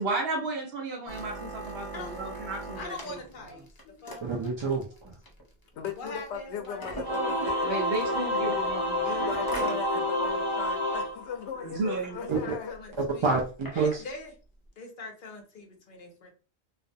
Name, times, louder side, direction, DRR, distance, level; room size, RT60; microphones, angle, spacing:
voice 1, 0.0-2.8 3.1-3.2 7.6-9.3 9.7-10.1 11.6-12.5, right 3 dB, 65° right, 0.9 m, -33 dB
sound 1, 1.1-9.8 10.3-10.4 10.7-11.0 11.4-11.5 11.8-12.0 12.7-14.0 14.7-14.8, right 1 dB, 30° left, 0.4 m, -40 dB
voice 2, 1.9-2.3 2.8-3.7 4.0-4.2 6.0-7.2 12.1-13.3 13.7-14.3 14.8-16.3, left 3 dB, 55° left, 0.8 m, -42 dB
voice 3, 4.2-5.1 12.3-12.4 13.0-14.0, right 4 dB, 50° right, 0.3 m, -28 dB
voice 4, 5.8-8.3 9.0-13.0, left 7 dB, 80° left, 0.9 m, -38 dB
Singing / Musical instrument, 7.0-11.9, left 1 dB, 25° right, 0.8 m, -29 dB
2.4 x 2.1 x 2.6 m
omnidirectional pair, 1.1 m